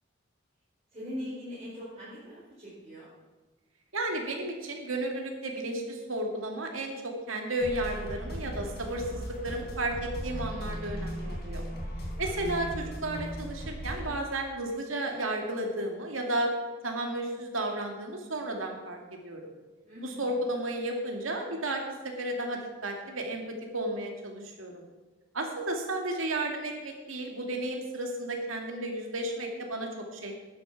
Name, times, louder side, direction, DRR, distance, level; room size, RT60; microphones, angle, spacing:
voice 1, 0.9-3.1 19.8-20.3, left 1 dB, 35° right, -10 dB, 4.8 m, -41 dB
voice 2, 3.9-11.6 12.2-16.5 16.8-19.0 19.2-19.4 20.0-24.8 25.3-30.3, right 1 dB, 90° right, 2 dB, 2.4 m, -33 dB
sound 1, 7.6-14.1, equal, 50° left, 3.6 m, -37 dB
12.5 x 9.5 x 5.9 m, 1.2 s
head